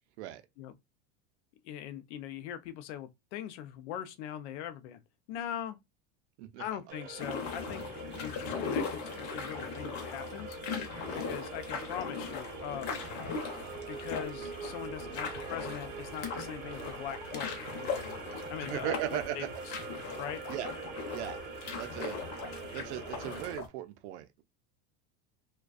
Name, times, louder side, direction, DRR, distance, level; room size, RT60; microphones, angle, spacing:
voice 1, 1.6-5.0 5.3-5.8 6.6-10.6 11.1-13.0 13.9-19.0 19.3-19.4 20.2-20.4, left 10 dB, 85° left, 0.5 m, -41 dB
voice 2, 6.4-6.8 11.0-11.3 18.6-19.5 20.5-20.7 21.1-21.4 21.8-22.2 22.7-24.4, right 12 dB, 90° right, 0.5 m, -38 dB
sound 1, 6.9-23.6, right 5 dB, 25° right, 0.4 m, -44 dB
sound 2, 7.2-23.7, left 5 dB, 50° left, 0.7 m, -39 dB
2.4 x 2.2 x 2.3 m
supercardioid pair, 155°, 34 cm